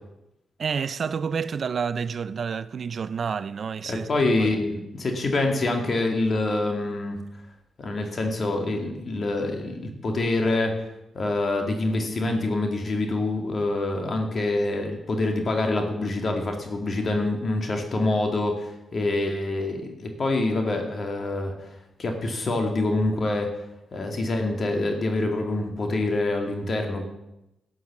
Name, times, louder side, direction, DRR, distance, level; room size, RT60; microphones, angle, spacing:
voice 1, 0.6-4.5, right 6 dB, 55° right, 0.4 m, -29 dB
voice 2, 3.9-7.2 7.8-10.8 11.1-23.5 23.9-27.1, left 2 dB, 45° left, 2.1 m, -26 dB
12.0 x 7.6 x 7.1 m
cardioid pair, 95°, 0 cm